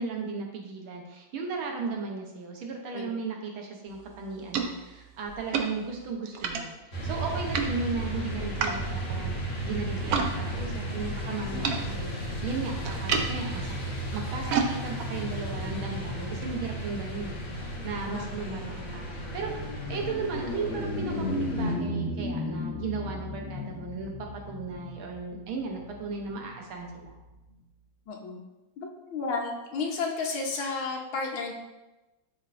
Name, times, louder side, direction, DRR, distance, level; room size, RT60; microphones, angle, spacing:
voice 1, 0.0-13.7 14.1-19.5 19.9-24.1 24.5-27.2, right 4 dB, 90° right, 1 dB, 1.9 m, -36 dB
sound 1, 3.9-10.3 10.6-16.5, right 5 dB, 65° right, 0.9 m, -34 dB
sound 2, 6.9-21.7, right 1 dB, 35° left, 1.6 m, -34 dB
voice 2, 11.5-12.3 18.1-18.7 28.1-28.4 28.8-31.5, left 4 dB, 75° left, -1 dB, 1.9 m, -33 dB
sound 3, 17.8-27.3, left 1 dB, 55° left, 0.8 m, -35 dB
11.5 x 4.5 x 2.6 m, 1.0 s
omnidirectional pair, 2.2 m